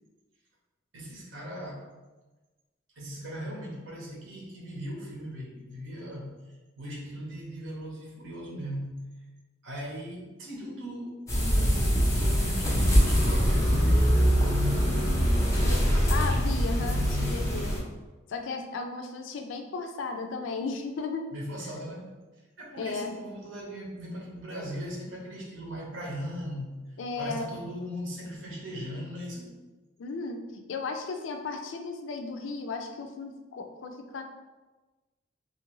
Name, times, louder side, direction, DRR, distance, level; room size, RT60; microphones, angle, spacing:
voice 1, 0.9-1.9 3.0-6.4 6.8-9.1 9.6-14.4 21.3-22.1 22.6-26.8 27.2-29.6, equal, 90° right, -2 dB, 0.8 m, -38 dB
sound 1, 11.3-17.8, equal, 15° left, 0.7 m, -23 dB
voice 2, 16.1-17.7 18.3-21.3 22.8-23.1 27.0-27.5 30.0-34.2, left 4 dB, 80° left, 5 dB, 0.4 m, -35 dB
2.9 x 2.4 x 3.0 m, 1.2 s
head